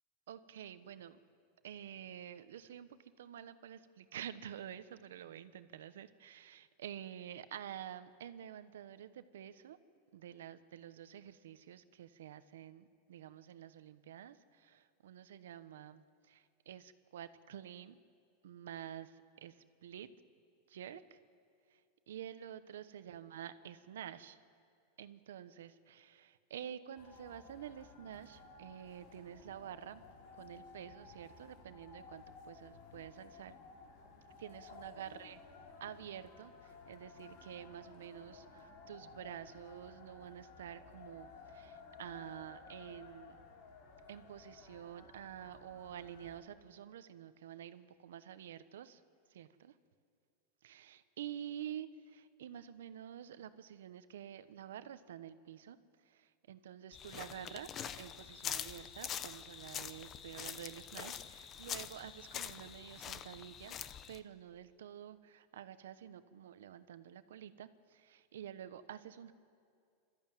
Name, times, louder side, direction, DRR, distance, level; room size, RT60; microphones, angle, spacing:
voice 1, 0.3-1.2 1.6-9.8 10.1-18.0 18.4-20.1 20.7-21.2 21.7-24.4 25.0-30.0 30.3-33.5 34.4-35.4 35.8-43.4 44.1-49.0 49.3-49.8 50.6-57.7 58.0-63.8 64.1-69.3, right 10 dB, 90° right, 12 dB, 1.0 m, -49 dB
sound 1, 27.0-46.4, left 4 dB, 60° left, 3.2 m, -56 dB
sound 2, 56.9-64.2, left 8 dB, 30° left, 0.8 m, -44 dB
27.0 x 13.5 x 9.2 m, 2.3 s
supercardioid pair, 140°, 0 cm